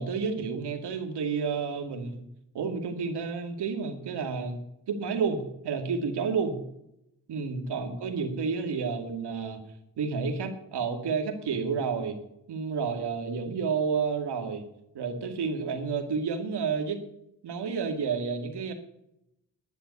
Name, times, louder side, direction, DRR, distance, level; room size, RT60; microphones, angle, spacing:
voice 1, 0.0-2.2 2.5-4.6 4.9-6.6 7.3-9.6 10.0-12.2 12.5-14.6 14.9-17.0 17.4-18.7, right 5 dB, 75° right, 5 dB, 2.4 m, -30 dB
10.5 x 10.0 x 8.4 m, 0.81 s
supercardioid pair, 45°, 40 cm